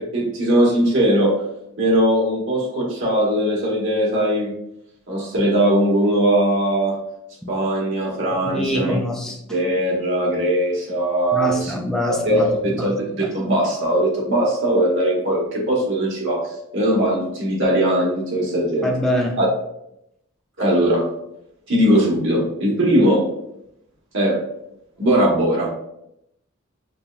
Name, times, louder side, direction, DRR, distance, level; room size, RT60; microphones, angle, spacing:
voice 1, 0.1-1.3 1.8-4.5 5.1-7.0 7.5-9.0 9.5-11.7 12.1-18.9 19.4-19.5 20.6-21.1 21.7-23.2 24.1-24.4 25.0-25.7, right 1 dB, 65° right, -3 dB, 1.2 m, -20 dB
voice 2, 8.4-9.6 11.3-13.3 18.8-19.4, equal, 5° left, -1 dB, 0.3 m, -25 dB
5.3 x 2.2 x 2.4 m, 0.80 s
head